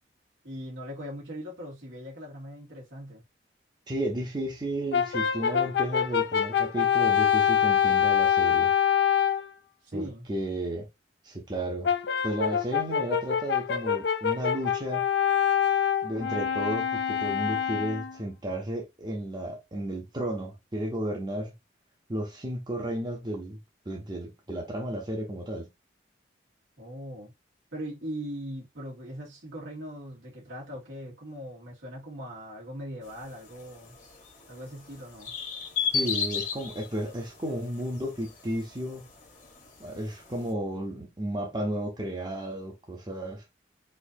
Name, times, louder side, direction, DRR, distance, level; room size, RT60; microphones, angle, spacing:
voice 1, 0.4-3.2 9.8-10.3 26.8-27.3 27.7-34.0 34.5-35.3, equal, 85° right, 2.0 m, -40 dB
voice 2, 3.9-8.7 9.9-10.9 11.2-11.9 12.2-15.0 16.0-21.5 22.1-23.6 23.9-25.7 35.9-39.0 39.8-43.4, right 1 dB, 25° right, 0.8 m, -33 dB
Brass instrument, 4.9-9.5 11.8-18.2, left 8 dB, 65° left, 0.4 m, -25 dB
sound 1, 33.0-40.5, left 6 dB, 40° left, 0.9 m, -36 dB
4.2 x 2.7 x 2.6 m
head